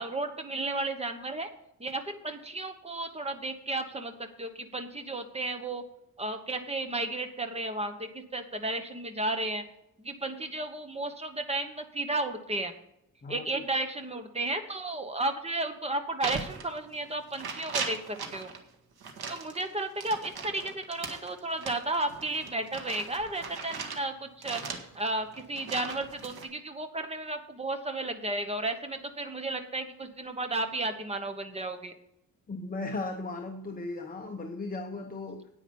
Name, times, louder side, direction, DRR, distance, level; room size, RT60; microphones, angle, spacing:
voice 1, 0.0-1.5 1.8-5.8 6.2-9.6 10.0-12.7 13.3-18.5 19.3-31.9, right 2 dB, 15° right, 7 dB, 1.1 m, -33 dB
sound 1, 16.2-17.1 17.3-18.6 19.0-24.0 24.4-26.5, right 5 dB, 85° right, 1.7 m, -38 dB
voice 2, 32.5-35.5, left 3 dB, 25° left, 3 dB, 0.9 m, -36 dB
9.8 x 9.1 x 5.3 m, 0.81 s
wide cardioid pair, 165°, 37 cm